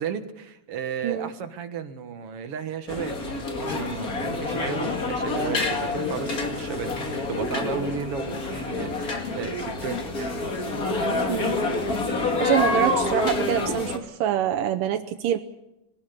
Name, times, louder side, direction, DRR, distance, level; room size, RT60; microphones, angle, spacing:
voice 1, 0.0-6.9 7.3-10.4, right 7 dB, 55° right, 7 dB, 2.1 m, -34 dB
sound 1, 2.9-14.0, left 2 dB, 30° left, 2.1 m, -27 dB
voice 2, 12.2-15.4, right 10 dB, 85° right, 5 dB, 2.5 m, -25 dB
22.5 x 19.0 x 6.8 m, 0.90 s
omnidirectional pair, 3.8 m